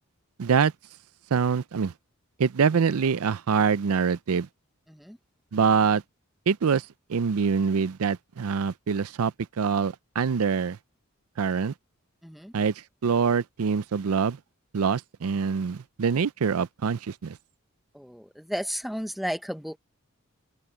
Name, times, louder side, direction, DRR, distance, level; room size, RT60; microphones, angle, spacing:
voice 1, 0.4-0.7 1.3-1.9 2.4-4.5 5.5-6.0 6.5-10.8 11.4-11.7 12.5-12.7 13.0-14.4 14.7-17.4, right 6 dB, 85° right, 0.5 m, -25 dB
voice 2, 12.2-12.5 17.9-19.8, equal, ahead, 0.9 m, -33 dB
head